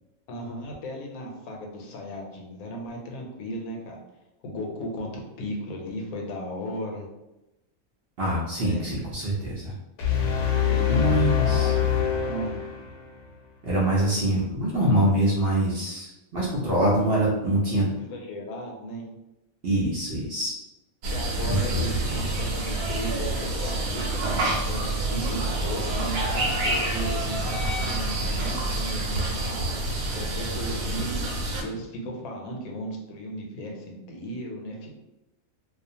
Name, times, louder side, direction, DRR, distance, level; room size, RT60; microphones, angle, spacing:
voice 1, 0.3-4.0 4.4-7.1 8.6-8.8 10.7-11.9 12.3-12.6 17.8-19.0 21.1-24.2 24.6-29.7 30.1-35.0, equal, 85° left, 0 dB, 1.1 m, -35 dB
voice 2, 8.2-9.7 10.9-11.7 13.6-17.9 19.6-20.5 21.7-22.3, right 1 dB, 55° right, -5 dB, 0.7 m, -24 dB
sound 1, 10.0-13.2, left 8 dB, 65° left, 0.8 m, -24 dB
sound 2, 21.0-31.6, right 2 dB, 80° right, 1.1 m, -27 dB
2.4 x 2.3 x 2.7 m, 0.95 s
omnidirectional pair, 1.5 m